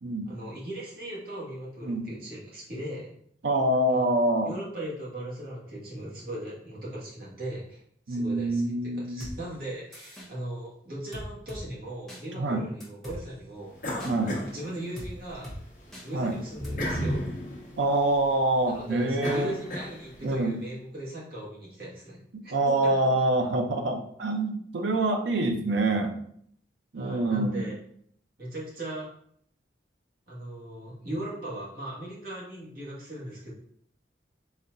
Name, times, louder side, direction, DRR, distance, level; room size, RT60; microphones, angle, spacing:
voice 1, 0.3-3.1 3.9-4.1 4.4-7.8 8.1-13.8 14.1-15.7 16.0-17.3 18.6-22.2 22.4-23.0 26.9-27.7 28.4-29.1 30.3-33.5, right 1 dB, 55° right, -5 dB, 1.6 m, -38 dB
voice 2, 3.4-4.5 8.1-9.3 12.4-12.6 14.1-14.4 16.1-16.4 17.8-19.5 20.2-20.6 22.3-26.2 26.9-27.7, right 2 dB, 75° right, 5 dB, 0.6 m, -26 dB
sound 1, 9.2-9.4 9.9-10.3 11.1-11.6 12.1-12.2 12.8-13.2 14.0-14.1 15.0-15.1 15.4-15.6 15.9-16.1 16.6-16.7, equal, ahead, 1.0 m, -39 dB
sound 2, 13.8-15.3 15.7-20.3, equal, 45° left, 1.0 m, -34 dB
4.1 x 3.9 x 2.6 m, 0.64 s
head